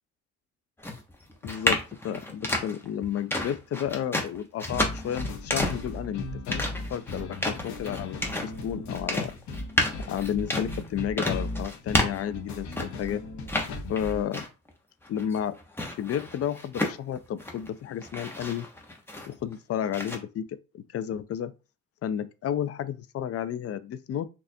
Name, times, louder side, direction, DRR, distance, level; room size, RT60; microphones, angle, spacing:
sound 1, 0.8-13.1 13.4-14.7 15.0-17.7 18.0-19.5 19.9-20.2, left 1 dB, 10° left, 0.8 m, -31 dB
voice 1, 1.4-9.3 10.0-13.2 13.9-14.5 15.1-15.6 16.0-18.7 19.3-21.5 22.0-24.3, left 9 dB, 50° left, 0.4 m, -32 dB
sound 2, 4.7-14.3, left 2 dB, 70° left, 0.8 m, -37 dB
4.2 x 2.5 x 2.7 m
cardioid pair, 90°, 30 cm